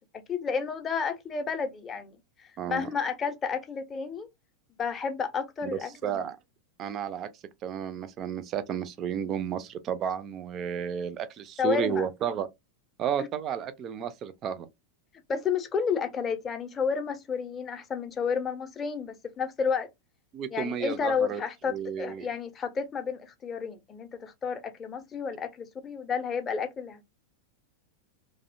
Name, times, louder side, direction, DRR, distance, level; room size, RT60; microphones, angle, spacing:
voice 1, 0.1-4.3 4.8-6.3 11.6-12.1 15.3-19.9 20.5-27.0, left 6 dB, 25° left, 0.5 m, -31 dB
voice 2, 2.6-2.9 5.6-6.4 6.8-7.3 7.6-12.5 13.0-14.7 20.3-21.4 21.7-22.3, right 8 dB, 30° right, 0.4 m, -32 dB
2.6 x 2.1 x 2.5 m
figure-of-eight pair, 90°, 0 cm